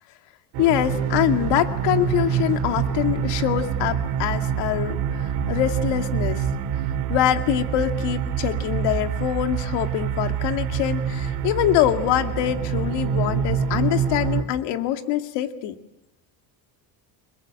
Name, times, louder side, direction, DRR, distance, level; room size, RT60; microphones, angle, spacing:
sound 1, 0.5-14.4, right 8 dB, 65° right, 3.0 m, -26 dB
voice 1, 0.6-5.0 5.5-6.4 7.1-15.7, left 12 dB, 75° left, 6 dB, 2.3 m, -24 dB
29.5 x 21.0 x 7.8 m, 0.93 s
cardioid pair, 140°, 42 cm